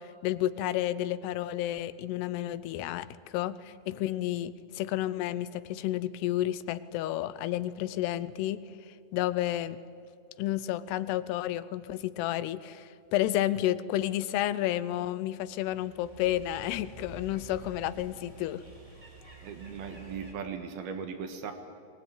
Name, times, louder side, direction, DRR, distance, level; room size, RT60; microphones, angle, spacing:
voice 1, 0.0-8.6 9.1-9.8 10.4-18.6, left 13 dB, 85° left, 15 dB, 2.8 m, -31 dB
sound 1, 15.4-20.3, right 1 dB, 10° right, 2.8 m, -49 dB
voice 2, 19.4-21.5, right 6 dB, 70° right, 6 dB, 3.2 m, -38 dB
23.0 x 19.5 x 9.3 m, 2.6 s
omnidirectional pair, 4.7 m